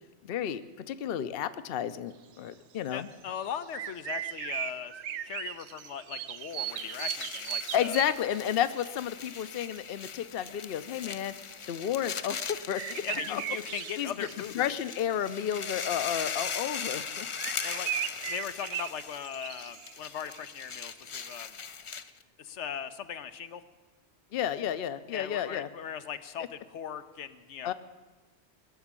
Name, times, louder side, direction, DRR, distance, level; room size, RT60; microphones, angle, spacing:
voice 1, 0.2-3.1 7.7-11.3 11.7-13.0 13.3-13.4 14.0-14.1 14.5-17.3 24.3-25.7 27.6-27.7, left 10 dB, 60° left, 13 dB, 0.8 m, -31 dB
voice 2, 2.9-5.0 5.2-8.0 11.0-11.2 13.0-14.6 17.6-17.9 18.2-21.6 22.4-23.6 25.1-27.7, left 8 dB, 85° left, 10 dB, 1.1 m, -39 dB
sound 1, 2.9-3.0 3.4-8.4 8.8-9.0 9.2-9.8 11.2-11.3 12.4-16.5 16.8-16.9 17.3-21.4, right 11 dB, 75° right, 0.9 m, -38 dB
sound 2, 6.4-22.2, left 6 dB, 45° left, 0.4 m, -40 dB
20.5 x 7.1 x 8.8 m, 1.3 s
omnidirectional pair, 1.2 m